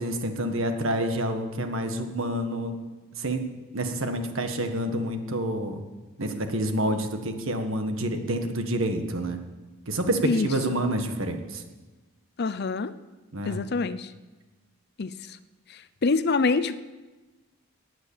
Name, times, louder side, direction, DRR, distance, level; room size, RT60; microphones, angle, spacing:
voice 1, 0.0-2.8 3.2-3.4 3.7-5.8 6.2-9.4 9.9-11.6 13.3-13.6, right 1 dB, 65° right, 6 dB, 1.7 m, -28 dB
voice 2, 10.2-10.8 12.4-12.9 13.4-14.1 15.0-15.1 16.0-16.8, left 4 dB, 50° left, 14 dB, 0.6 m, -25 dB
18.5 x 9.6 x 7.2 m, 1.2 s
head